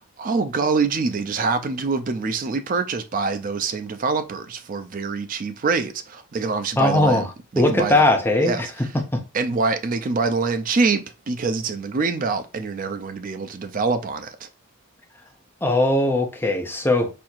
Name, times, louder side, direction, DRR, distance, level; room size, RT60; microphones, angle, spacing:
voice 1, 0.0-7.2 7.5-8.0 8.4-8.6 9.3-14.5, right 4 dB, 40° right, 0.4 m, -25 dB
voice 2, 6.8-7.3 7.6-8.7 15.6-17.1, left 2 dB, 10° left, 0.7 m, -19 dB
4.3 x 2.7 x 2.4 m
head